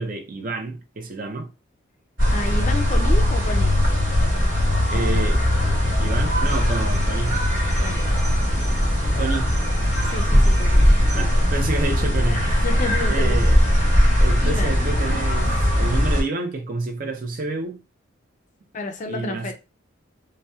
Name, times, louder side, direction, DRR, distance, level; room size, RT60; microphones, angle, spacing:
voice 1, 0.0-1.5 4.9-5.4 6.0-7.4 9.2-9.5 11.2-12.4 13.1-13.6 14.2-17.8 19.1-19.5, right 3 dB, 40° right, 0.4 m, -29 dB
sound 1, 2.2-16.2, equal, 60° right, 1.3 m, -19 dB
voice 2, 2.3-3.8 4.9-5.3 7.8-8.0 10.1-11.4 12.2-14.0 14.4-14.8 18.7-19.5, left 2 dB, 35° left, 0.3 m, -32 dB
2.7 x 2.0 x 2.2 m
head